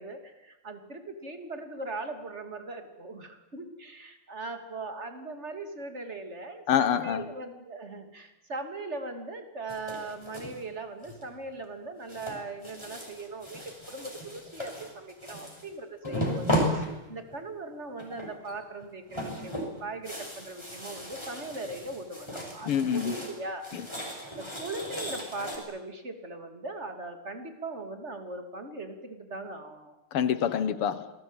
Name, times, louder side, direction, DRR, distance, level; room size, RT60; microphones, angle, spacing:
voice 1, 0.0-23.7 24.0-29.9, right 2 dB, 30° right, 3.0 m, -40 dB
voice 2, 6.7-7.3 16.0-16.3 22.7-23.2 23.7-23.9 30.1-31.1, left 8 dB, 80° left, 2.2 m, -27 dB
sound 1, 9.7-10.6 11.0-11.5 12.1-15.7 16.0-17.5 18.0-18.5 18.8-23.4 23.6-25.6, equal, 10° left, 5.8 m, -35 dB
27.0 x 20.0 x 9.1 m
omnidirectional pair, 2.4 m